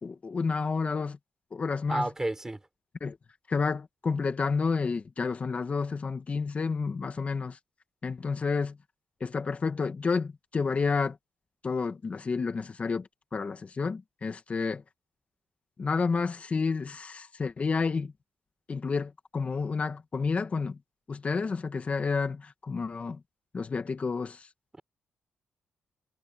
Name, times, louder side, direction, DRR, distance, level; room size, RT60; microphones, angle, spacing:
voice 1, 0.0-1.2 1.5-2.1 3.0-3.2 3.5-7.6 8.0-8.8 9.2-11.2 11.6-14.8 15.8-18.1 18.7-20.8 21.1-23.2 23.5-24.5, left 4 dB, 35° left, 1.8 m, -30 dB
voice 2, 1.9-2.6, right 2 dB, 15° right, 5.5 m, -30 dB
cardioid pair, 100°, 4 cm